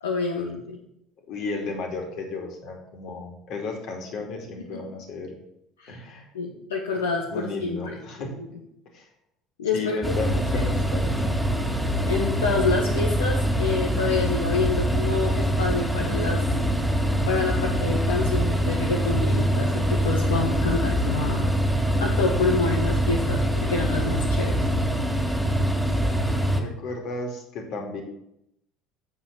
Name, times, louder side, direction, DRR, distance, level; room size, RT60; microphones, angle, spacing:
voice 1, 0.0-0.8 4.7-4.8 5.8-6.0 6.3-8.5 9.6-10.1 10.5-10.6 12.1-16.4 17.3-21.5 22.0-24.7, left 4 dB, 75° left, -1 dB, 1.2 m, -27 dB
voice 2, 1.3-5.3 5.9-6.3 7.3-8.3 8.9-9.1 9.7-11.3 26.5-28.0, left 3 dB, 55° left, 2 dB, 2.6 m, -34 dB
sound 1, 10.0-26.6, equal, ahead, 2.7 m, -24 dB
7.5 x 7.1 x 7.1 m, 0.79 s
figure-of-eight pair, 60°, 0 cm